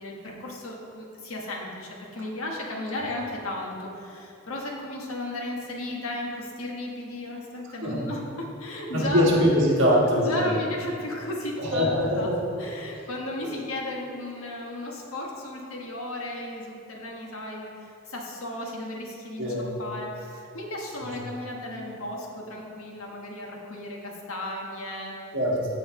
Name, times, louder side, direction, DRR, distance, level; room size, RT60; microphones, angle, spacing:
voice 1, 0.0-9.2 10.2-12.3 12.6-25.1, left 1 dB, 75° left, -1 dB, 1.4 m, -35 dB
voice 2, 8.9-10.5 11.6-12.4 13.4-13.6 19.4-19.7 21.0-21.1 21.5-21.9 25.3-25.7, equal, 55° right, -4 dB, 1.6 m, -23 dB
14.5 x 4.8 x 3.2 m, 2.6 s
head